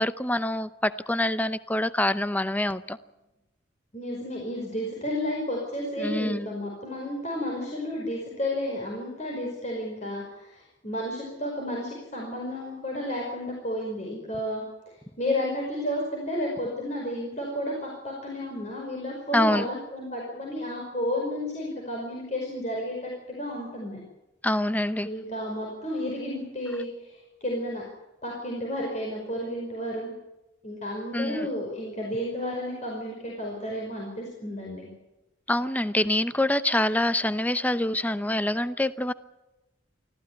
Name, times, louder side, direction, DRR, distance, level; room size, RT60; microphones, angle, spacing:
voice 1, 0.0-3.0 6.0-6.5 19.3-19.7 24.4-25.1 31.1-31.5 35.5-39.1, left 1 dB, 10° left, 14 dB, 0.7 m, -25 dB
voice 2, 3.9-24.0 25.0-27.8 28.2-30.1 30.6-34.9, left 1 dB, 35° left, -2 dB, 5.2 m, -32 dB
25.0 x 15.0 x 9.5 m, 0.98 s
head